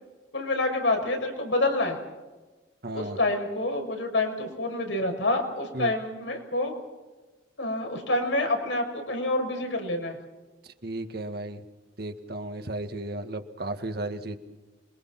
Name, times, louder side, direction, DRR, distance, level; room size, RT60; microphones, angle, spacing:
voice 1, 0.3-2.0 2.9-6.7 7.6-10.2, left 2 dB, 85° left, 3 dB, 6.2 m, -27 dB
voice 2, 2.8-3.2 5.7-5.9 10.6-11.6 12.0-14.4, right 1 dB, 55° right, 7 dB, 1.8 m, -34 dB
27.0 x 23.0 x 6.0 m, 1.2 s
head